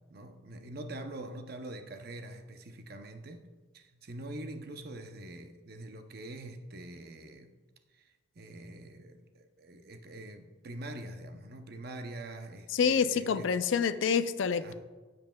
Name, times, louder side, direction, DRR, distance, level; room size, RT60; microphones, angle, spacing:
voice 1, 0.1-3.4 3.7-7.5 7.9-13.5 14.6-14.7, right 1 dB, 55° right, 6 dB, 0.6 m, -44 dB
voice 2, 12.7-14.7, left 6 dB, 90° left, 12 dB, 0.4 m, -27 dB
14.5 x 5.3 x 2.2 m, 1.3 s
head